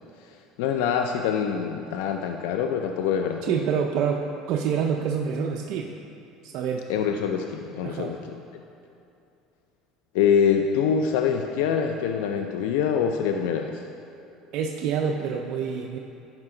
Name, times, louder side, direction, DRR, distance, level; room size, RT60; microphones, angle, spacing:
voice 1, 0.2-3.5 6.9-8.4 10.1-13.9, left 7 dB, 85° left, 4 dB, 0.4 m, -25 dB
voice 2, 3.5-5.9 6.4-6.9 7.8-8.1 14.5-16.0, right 7 dB, 60° right, 1 dB, 0.4 m, -27 dB
10.5 x 4.8 x 3.8 m, 2.7 s
cardioid pair, 130°, 0 cm